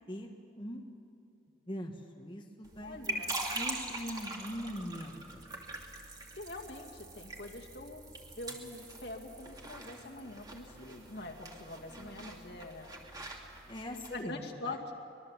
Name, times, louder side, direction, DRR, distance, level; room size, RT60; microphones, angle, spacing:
voice 1, 1.7-3.2 3.5-5.6 13.7-14.8, equal, 25° left, 0 dB, 1.4 m, -42 dB
sound 1, 2.6-14.2, right 2 dB, 20° right, 2.3 m, -43 dB
voice 2, 2.8-3.4 6.3-8.0 8.4-12.9 14.1-14.9, left 2 dB, 60° left, 1 dB, 2.3 m, -44 dB
24.5 x 21.5 x 7.3 m, 2.7 s
head